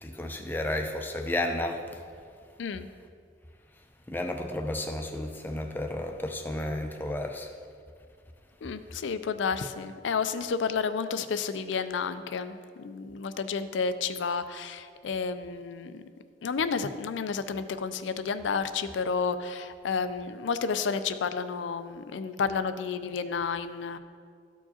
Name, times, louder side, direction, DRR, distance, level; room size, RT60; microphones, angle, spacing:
voice 1, 0.0-2.0 4.1-7.5, left 1 dB, 10° left, 3 dB, 0.5 m, -32 dB
voice 2, 8.6-16.0 16.4-24.0, left 5 dB, 80° left, 11 dB, 0.4 m, -31 dB
13.5 x 4.5 x 2.8 m, 2.2 s
head